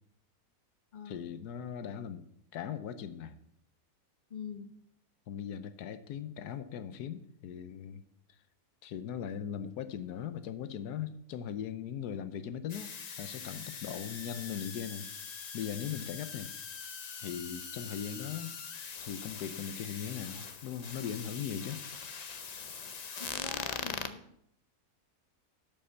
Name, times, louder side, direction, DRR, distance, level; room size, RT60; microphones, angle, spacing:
voice 1, 1.0-2.3 2.5-3.4 5.3-8.0 8.8-12.9 13.2-16.5 17.2-18.6 19.0-21.8, left 8 dB, 90° left, 11 dB, 1.3 m, -39 dB
voice 2, 4.3-4.7 23.2-24.2, left 6 dB, 30° left, 6 dB, 1.2 m, -44 dB
sound 1, 12.7-24.1, left 6 dB, 50° left, 0.4 m, -42 dB
12.0 x 5.5 x 6.9 m, 0.74 s
omnidirectional pair, 1.6 m